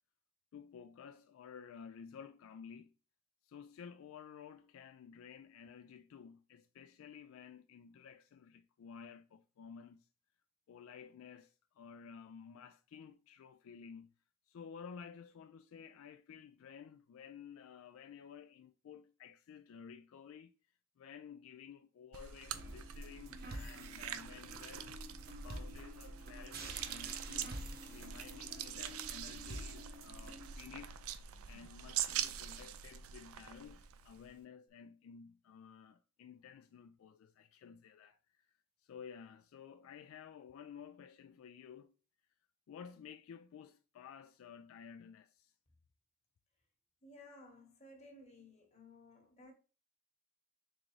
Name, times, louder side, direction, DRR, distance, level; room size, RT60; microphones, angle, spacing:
voice 1, 0.5-2.9 3.4-10.1 10.7-14.1 14.5-20.5 21.0-24.9 25.4-27.5 27.9-31.0 31.5-38.5 38.8-41.9 42.7-45.5, left 7 dB, 75° left, 0.3 m, -53 dB
sound 1, 22.1-34.3, right 9 dB, 85° right, 0.4 m, -44 dB
sound 2, 22.5-30.5, right 1 dB, 45° right, 0.7 m, -49 dB
voice 2, 47.0-49.5, left 1 dB, 30° left, 1.1 m, -57 dB
3.9 x 3.6 x 3.1 m
head